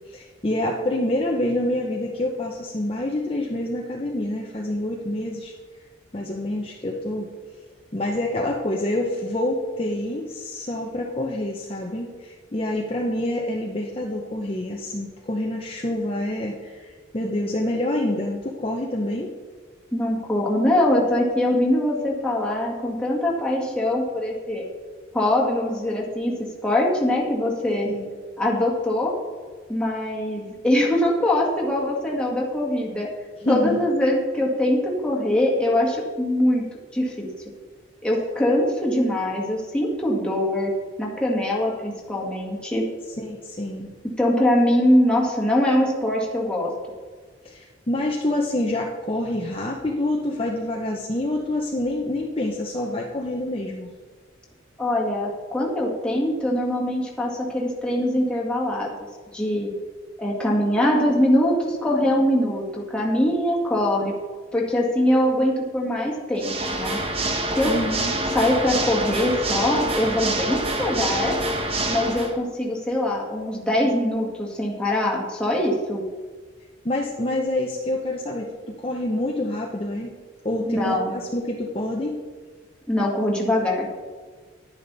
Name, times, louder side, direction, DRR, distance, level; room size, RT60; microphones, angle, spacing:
voice 1, 0.1-5.5 6.1-7.3 7.9-19.3 27.9-28.1 33.4-33.8 43.2-43.9 47.4-53.9 67.7-68.2 76.8-80.1 80.4-82.1, left 1 dB, 30° left, -1 dB, 0.8 m, -27 dB
voice 2, 19.9-24.6 25.1-26.3 26.6-27.9 28.4-29.1 29.7-33.1 33.5-36.7 36.9-37.3 38.0-40.7 41.0-42.8 44.2-46.7 54.8-58.9 59.3-59.7 60.2-64.1 64.5-67.0 67.6-67.7 68.3-71.4 71.9-76.0 80.7-81.2 82.9-83.9, left 1 dB, 5° left, -3 dB, 1.9 m, -22 dB
Water / Mechanisms, 66.3-72.3, right 1 dB, 30° right, 1.0 m, -26 dB
11.0 x 10.0 x 4.1 m, 1.4 s
head